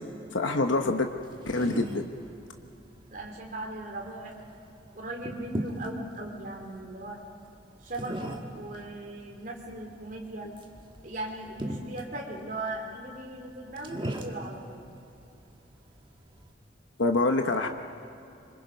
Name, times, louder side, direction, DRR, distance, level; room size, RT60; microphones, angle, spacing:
voice 1, 0.3-1.1 1.5-2.1 17.0-17.7, left 2 dB, 80° left, 5 dB, 1.1 m, -25 dB
sound 1, 0.7-16.5, right 1 dB, 25° right, 1.5 m, -41 dB
voice 2, 3.1-4.4 4.9-7.2 7.8-10.5 11.0-14.8, right 2 dB, 45° right, 0 dB, 3.8 m, -38 dB
27.5 x 25.0 x 5.4 m, 2.7 s
head